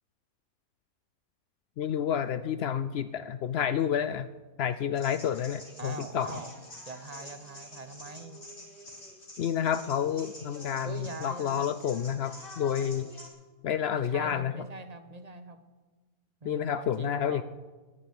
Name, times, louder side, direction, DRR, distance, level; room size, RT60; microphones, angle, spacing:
voice 1, 1.8-4.3 4.6-6.3 9.4-13.1 13.6-14.5 16.4-17.4, left 9 dB, 90° left, 13 dB, 0.5 m, -29 dB
sound 1, 5.0-13.3, left 1 dB, 35° left, 3.1 m, -47 dB
voice 2, 5.8-6.5 6.9-8.5 10.8-11.7 13.8-15.6 16.4-17.4, right 3 dB, 30° right, 10 dB, 0.9 m, -42 dB
11.0 x 10.0 x 9.2 m, 1.3 s
omnidirectional pair, 1.7 m